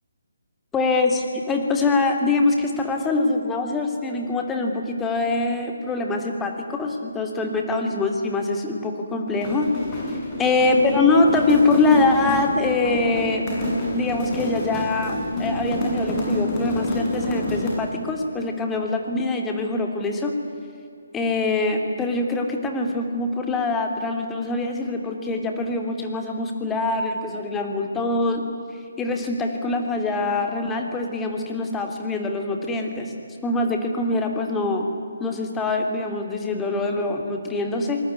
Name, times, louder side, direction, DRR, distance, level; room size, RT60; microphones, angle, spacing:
voice 1, 0.7-9.7 10.4-13.4 13.9-20.3 21.1-28.4 29.0-33.1 33.4-34.9 35.2-38.0, left 3 dB, 10° left, 3 dB, 3.0 m, -23 dB
sound 1, 9.3-18.0, left 1 dB, 25° left, 7.9 m, -27 dB
26.5 x 20.5 x 9.7 m, 2.6 s
figure-of-eight pair, 145°, 0 cm